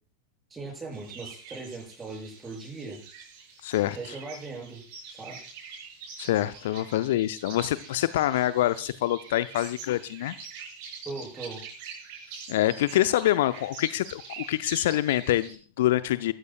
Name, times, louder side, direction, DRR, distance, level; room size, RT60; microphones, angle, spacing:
voice 1, 0.5-3.0 3.9-5.5 11.0-11.6, right 3 dB, 15° right, 0 dB, 7.8 m, -39 dB
sound 1, 0.9-15.5, right 5 dB, 45° right, 7.3 m, -45 dB
voice 2, 3.6-4.0 6.2-10.3 12.5-16.3, left 14 dB, 55° left, 14 dB, 0.6 m, -26 dB
21.5 x 14.5 x 2.4 m, 0.40 s
figure-of-eight pair, 90°, 0 cm